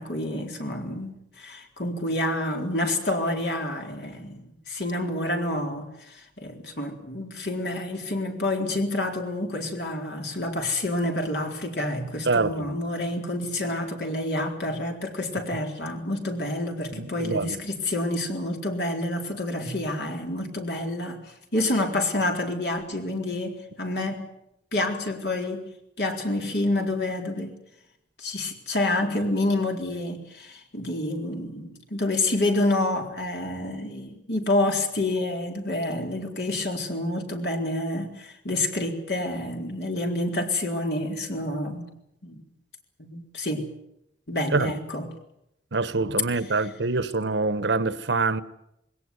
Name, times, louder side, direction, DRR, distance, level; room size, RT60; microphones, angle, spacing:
voice 1, 0.0-21.2 21.5-24.3 24.7-25.7 26.0-27.5 28.2-41.9 42.2-42.4 43.0-43.7 44.3-45.1, left 1 dB, 65° left, 4.0 m, -28 dB
voice 2, 12.2-12.7 16.9-17.6 44.5-44.7 45.7-48.4, right 3 dB, 85° right, 1.1 m, -25 dB
20.5 x 18.0 x 9.6 m
head